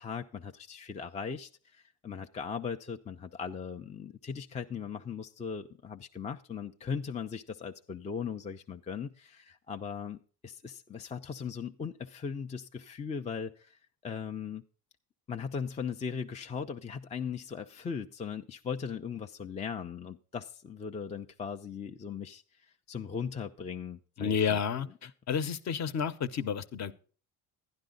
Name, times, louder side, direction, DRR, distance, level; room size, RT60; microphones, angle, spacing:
voice 1, 0.0-14.6 15.3-24.9, left 6 dB, 15° left, 0.4 m, -39 dB
voice 2, 24.2-24.9 25.3-26.9, left 7 dB, 40° left, 0.8 m, -30 dB
11.5 x 11.0 x 3.8 m
cardioid pair, 110°, 42 cm